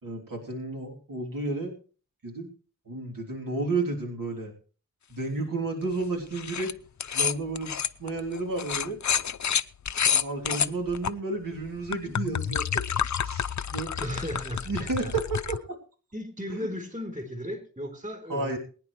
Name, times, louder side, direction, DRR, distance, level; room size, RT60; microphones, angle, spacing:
voice 1, 0.0-1.7 2.2-2.5 2.8-4.5 5.1-6.7 7.1-7.7 8.0-9.0 10.1-12.9 13.2-13.9 14.6-15.8 16.5-16.7 18.3-18.6, right 3 dB, 85° right, 0 dB, 3.3 m, -32 dB
sound 1, 6.3-6.7 7.0-11.1 11.7-15.6, left 7 dB, 60° left, 0.6 m, -29 dB
voice 2, 14.0-14.7 15.0-15.1 16.1-18.6, equal, 25° right, 6 dB, 3.8 m, -35 dB
22.5 x 9.8 x 3.2 m, 0.39 s
wide cardioid pair, 70°, 32 cm